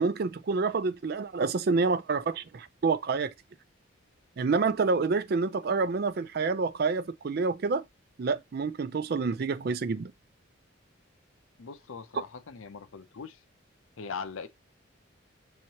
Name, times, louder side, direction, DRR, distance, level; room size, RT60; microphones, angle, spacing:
voice 1, 0.0-3.3 4.4-7.8 8.2-10.1, right 4 dB, 50° right, 0.4 m, -28 dB
voice 2, 11.6-13.4 14.0-14.5, left 5 dB, 75° left, 0.6 m, -40 dB
6.3 x 2.9 x 2.8 m
head